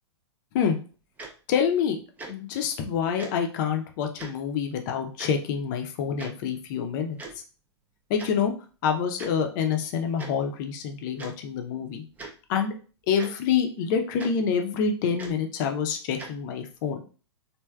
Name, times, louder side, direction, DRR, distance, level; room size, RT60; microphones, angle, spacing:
Tick-tock, 1.2-1.3 2.2-2.3 3.2-3.3 4.2-4.3 5.2-5.3 6.2-6.3 7.2-7.4 8.2-8.3 9.2-9.3 10.2-10.3 11.2-11.3 12.1-12.3 13.2-13.3 14.2-14.3 15.2-15.4 16.2-16.3, right 2 dB, 10° right, 0.5 m, -39 dB
voice 1, 1.5-2.0 2.3-7.2 8.1-8.5 8.8-12.0 12.5-12.7 13.1-17.0, left 7 dB, 40° left, 4 dB, 0.6 m, -27 dB
3.2 x 2.6 x 2.2 m, 0.37 s
hypercardioid pair, 125°, 15 cm